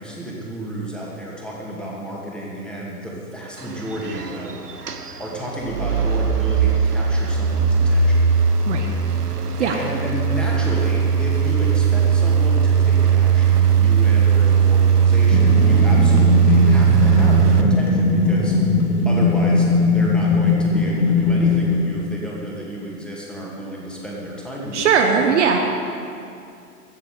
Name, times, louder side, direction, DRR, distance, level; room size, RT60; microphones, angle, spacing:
voice 1, 0.0-8.2 9.6-18.5 19.0-19.7 19.9-25.0, equal, ahead, -4 dB, 2.4 m, -32 dB
sound 1, 3.6-17.6, right 7 dB, 80° right, 1.1 m, -18 dB
sound 2, 15.3-22.1, left 3 dB, 70° left, 2.0 m, -19 dB
voice 2, 24.7-25.6, right 6 dB, 50° right, 3 dB, 1.3 m, -18 dB
14.5 x 7.5 x 8.6 m, 2.4 s
figure-of-eight pair, 110°, 46 cm